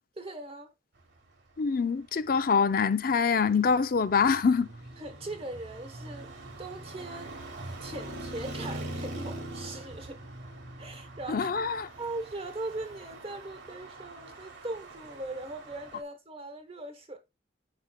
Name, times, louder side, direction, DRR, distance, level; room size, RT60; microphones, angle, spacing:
voice 1, 0.2-0.7 5.0-10.2 10.8-11.5 12.0-17.2, right 2 dB, 30° right, 1.1 m, -40 dB
voice 2, 1.6-4.7 11.3-11.9, left 5 dB, 50° left, 0.5 m, -25 dB
Traffic noise roadway noise, 2.3-16.0, right 1 dB, 70° right, 1.2 m, -43 dB
9.5 x 5.1 x 2.3 m
head